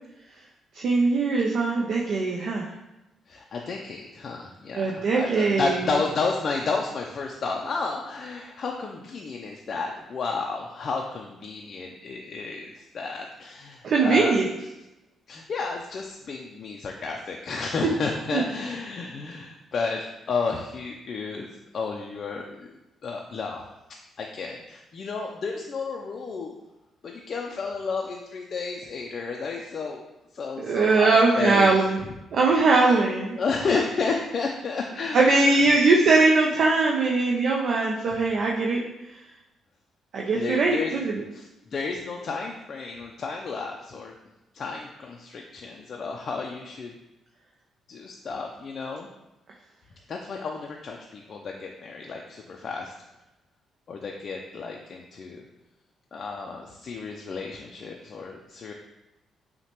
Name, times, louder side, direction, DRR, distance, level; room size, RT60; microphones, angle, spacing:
voice 1, 0.7-2.7 4.7-5.8 13.8-14.5 18.3-18.4 30.6-32.0 32.3-33.4 35.1-38.8 40.1-41.2, right 3 dB, 60° right, -2 dB, 0.4 m, -21 dB
voice 2, 3.3-14.7 15.3-21.5 21.7-22.7 23.0-23.7 24.2-26.6 27.0-32.1 33.4-35.7 38.1-38.3 40.3-41.0 41.3-44.1 44.5-46.9 47.9-49.1 50.1-52.9 53.9-55.4 56.1-58.7, left 4 dB, 50° left, 1 dB, 0.3 m, -32 dB
5.6 x 2.2 x 2.9 m, 0.96 s
cardioid pair, 90°, 0 cm